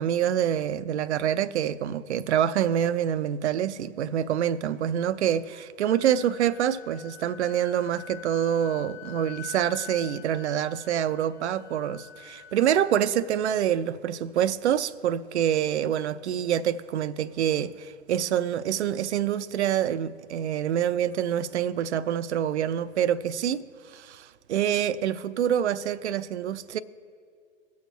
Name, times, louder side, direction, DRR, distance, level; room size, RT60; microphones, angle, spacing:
voice 1, 0.0-26.8, right 10 dB, 65° right, 0.5 m, -26 dB
Wind instrument woodwind instrument, 5.5-13.3, left 13 dB, 45° left, 1.1 m, -46 dB
19.0 x 7.0 x 3.1 m
figure-of-eight pair, 105°, 36 cm